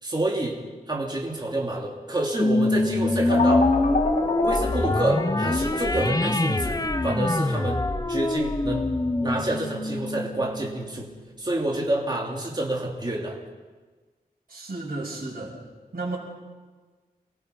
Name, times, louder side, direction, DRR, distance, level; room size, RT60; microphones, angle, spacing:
voice 1, 0.0-0.6 0.9-3.7 4.4-7.8 8.1-8.9 9.2-11.1 11.4-13.4, right 1 dB, 25° right, -1 dB, 3.1 m, -28 dB
sound 1, 2.4-11.1, left 2 dB, 25° left, 1.0 m, -25 dB
sound 2, 3.3-11.7, left 3 dB, 60° left, 2.3 m, -31 dB
voice 2, 14.5-15.5 15.9-16.2, right 2 dB, 65° right, -6 dB, 6.1 m, -32 dB
28.5 x 22.0 x 5.5 m, 1.4 s
wide cardioid pair, 90°, 16 cm